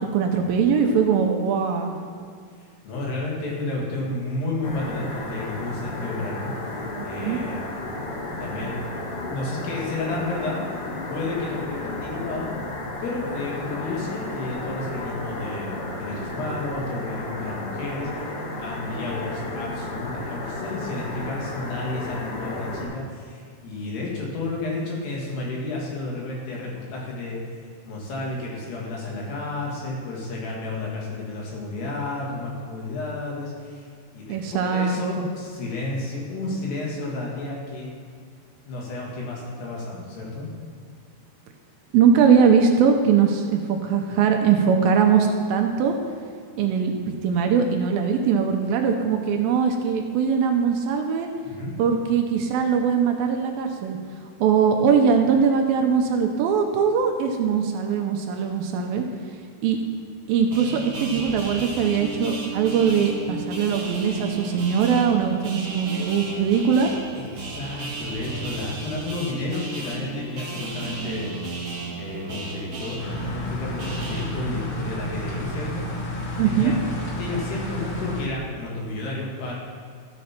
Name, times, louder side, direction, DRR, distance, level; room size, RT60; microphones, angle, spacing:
voice 1, 0.0-2.0 6.9-7.4 34.3-35.3 41.9-46.0 46.6-51.3 51.8-54.0 54.4-59.1 59.6-59.8 60.3-66.9 76.4-76.7, right 6 dB, 80° right, 3 dB, 2.3 m, -21 dB
voice 2, 2.8-6.5 7.0-7.7 8.4-8.8 9.3-10.6 11.1-12.5 13.0-27.4 27.9-33.9 34.1-34.4 34.6-37.9 38.7-40.5 51.4-51.8 65.8-66.1 67.2-71.3 72.0-75.9 76.1-76.8 77.2-79.5, left 2 dB, 85° left, -3 dB, 4.1 m, -31 dB
sound 1, 4.6-22.8, left 2 dB, 50° left, 2.0 m, -33 dB
sound 2, 60.5-74.2, right 4 dB, 55° right, 1.4 m, -34 dB
sound 3, 73.0-78.3, left 1 dB, 65° left, 1.5 m, -31 dB
13.0 x 5.3 x 5.8 m, 2.1 s
omnidirectional pair, 4.6 m